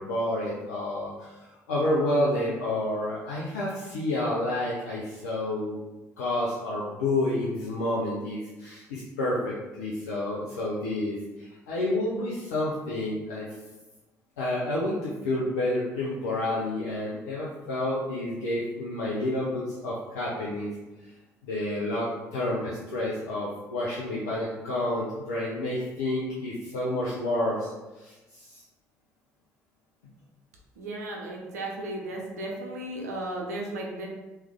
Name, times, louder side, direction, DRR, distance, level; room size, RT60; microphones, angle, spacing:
voice 1, 0.0-5.8 6.2-13.5 14.4-20.7 21.4-27.7 28.0-28.6, left 1 dB, 80° left, -6 dB, 0.6 m, -29 dB
voice 2, 30.8-34.1, right 1 dB, 85° right, -1 dB, 0.6 m, -35 dB
3.2 x 3.2 x 3.4 m, 1.1 s
hypercardioid pair, 50°, 8 cm